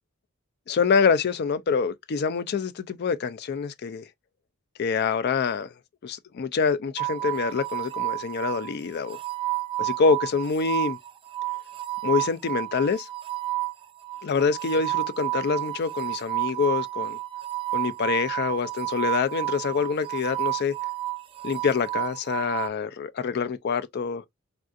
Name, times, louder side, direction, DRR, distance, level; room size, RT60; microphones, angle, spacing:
voice 1, 0.7-4.0 4.8-5.7 6.0-9.2 9.8-11.0 12.0-13.1 14.2-17.2 17.7-20.7 21.4-24.2, left 5 dB, 50° left, 0.4 m, -26 dB
sound 1, 7.0-22.7, right 18 dB, 25° right, 0.3 m, -31 dB
3.5 x 2.4 x 2.5 m
head